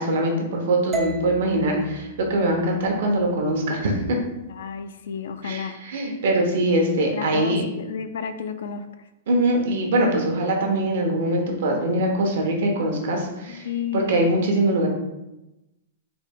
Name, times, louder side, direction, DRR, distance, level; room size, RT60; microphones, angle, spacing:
voice 1, 0.0-4.2 5.4-7.6 9.3-13.7 13.9-14.9, right 1 dB, 65° right, 1 dB, 0.8 m, -22 dB
sound 1, 0.9-5.1, right 1 dB, 15° right, 0.4 m, -37 dB
voice 2, 4.5-5.8 7.1-8.8 13.5-14.3, left 7 dB, 75° left, 9 dB, 0.3 m, -31 dB
3.9 x 2.2 x 3.5 m, 0.96 s
hypercardioid pair, 155°, 0 cm